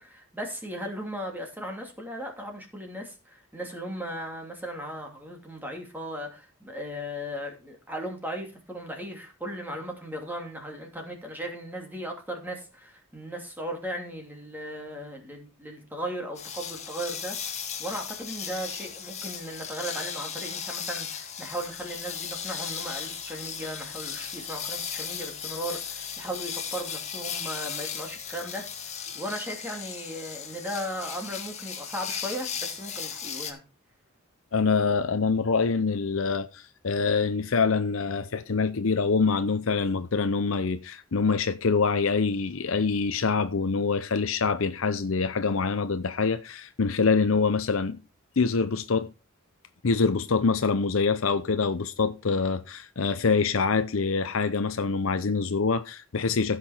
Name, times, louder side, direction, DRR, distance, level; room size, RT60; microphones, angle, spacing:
voice 1, 0.0-33.6, equal, 10° right, 2.6 m, -37 dB
sound 1, 16.4-33.5, left 7 dB, 30° left, 1.8 m, -36 dB
voice 2, 34.5-48.0 48.4-49.1 49.8-56.6, left 4 dB, 70° left, 0.7 m, -25 dB
15.0 x 6.0 x 4.4 m
head